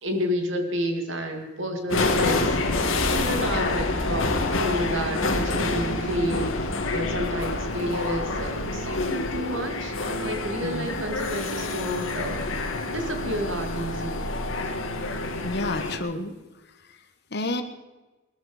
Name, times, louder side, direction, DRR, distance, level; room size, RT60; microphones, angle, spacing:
voice 1, 0.0-6.5 6.9-12.5 12.9-14.3, equal, 60° right, 5 dB, 2.4 m, -30 dB
sound 1, 1.9-16.0, left 2 dB, 70° left, 1.8 m, -27 dB
voice 2, 15.4-16.3 17.3-17.6, left 2 dB, 50° left, 9 dB, 1.3 m, -29 dB
21.0 x 13.0 x 5.0 m, 1.2 s
head